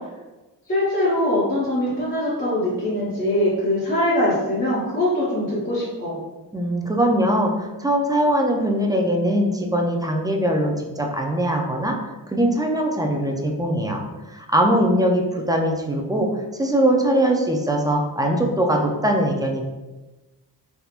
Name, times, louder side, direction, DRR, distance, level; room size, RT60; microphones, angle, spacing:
voice 1, 0.7-6.2, left 1 dB, 25° left, -10 dB, 1.1 m, -22 dB
voice 2, 6.5-12.0 12.3-19.6, right 1 dB, 10° right, 1 dB, 0.4 m, -21 dB
3.5 x 2.8 x 2.4 m, 1.1 s
cardioid pair, 80°, 41 cm